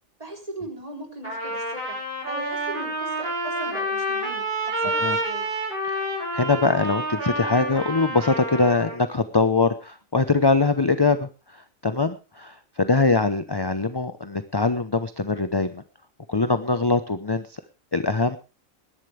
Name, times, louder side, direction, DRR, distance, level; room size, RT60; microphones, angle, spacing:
voice 1, 0.2-2.0 2.2-4.5 4.8-5.5, right 2 dB, 25° right, 2 dB, 3.8 m, -38 dB
Trumpet, 1.2-9.0, right 1 dB, 40° right, 7.3 m, -28 dB
voice 2, 6.3-15.8 16.3-17.6 17.9-18.4, left 3 dB, 20° left, 11 dB, 0.7 m, -23 dB
21.0 x 11.5 x 3.3 m, 0.29 s
omnidirectional pair, 1.4 m